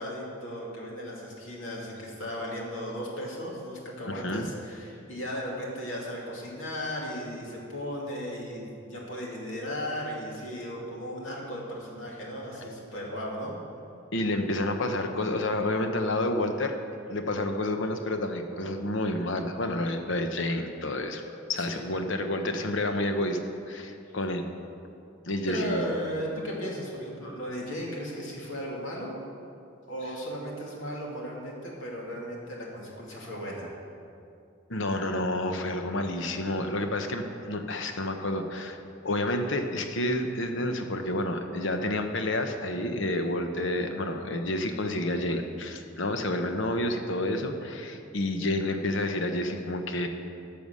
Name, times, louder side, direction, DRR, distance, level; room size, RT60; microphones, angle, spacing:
voice 1, 0.0-13.5 21.6-21.8 25.5-29.2 29.9-33.7, equal, 85° left, -2 dB, 2.4 m, -36 dB
voice 2, 4.1-4.5 14.1-16.7 17.1-21.2 21.5-23.4 23.7-24.5 25.3-25.9 34.7-38.8 39.0-50.1, left 1 dB, 70° left, 6 dB, 0.9 m, -29 dB
12.5 x 7.0 x 6.4 m, 2.5 s
head